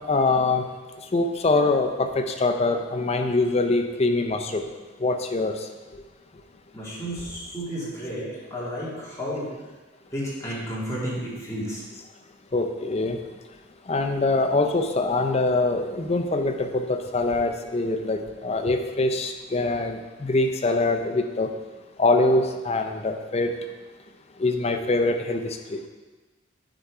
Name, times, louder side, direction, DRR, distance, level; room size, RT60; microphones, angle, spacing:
voice 1, 0.1-0.6 1.1-4.6 5.0-5.5 12.5-13.2 13.9-21.5 22.0-23.5 24.4-25.4 25.7-25.8, left 2 dB, 30° left, 5 dB, 0.5 m, -23 dB
voice 2, 6.7-9.5 10.1-11.8 24.7-24.9, equal, 15° left, -8 dB, 2.3 m, -32 dB
8.9 x 4.3 x 4.9 m, 1.2 s
head